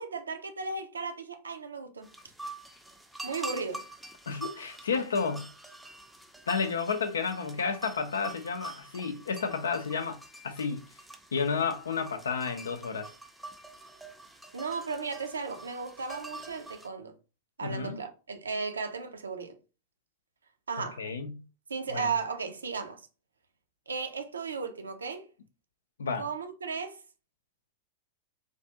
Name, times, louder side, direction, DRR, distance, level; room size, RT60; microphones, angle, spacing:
voice 1, 0.0-2.1 3.2-3.8 14.5-17.1 17.6-19.6 20.7-21.0 21.7-23.0 23.9-25.3 26.2-27.0, right 4 dB, 75° right, 0.5 m, -35 dB
sound 1, 2.0-16.9, right 2 dB, 5° right, 0.5 m, -46 dB
voice 2, 4.3-5.5 6.5-10.8 11.3-13.1 17.6-18.0 21.0-21.4 21.9-22.1 26.0-26.3, left 5 dB, 70° left, 0.4 m, -31 dB
3.3 x 2.4 x 2.8 m
figure-of-eight pair, 90°, 0 cm